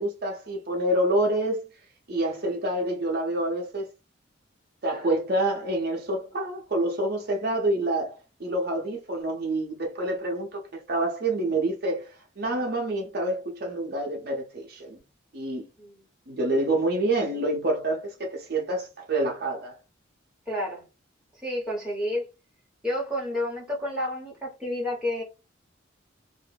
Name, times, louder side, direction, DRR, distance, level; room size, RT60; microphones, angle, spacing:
voice 1, 0.0-1.7 2.1-3.9 4.8-12.1 12.4-15.0 15.3-15.6 16.3-19.8, right 1 dB, 50° right, 0.6 m, -27 dB
voice 2, 20.5-20.8 21.4-22.3 22.8-25.2, left 1 dB, 5° right, 0.9 m, -30 dB
2.2 x 2.0 x 3.2 m
head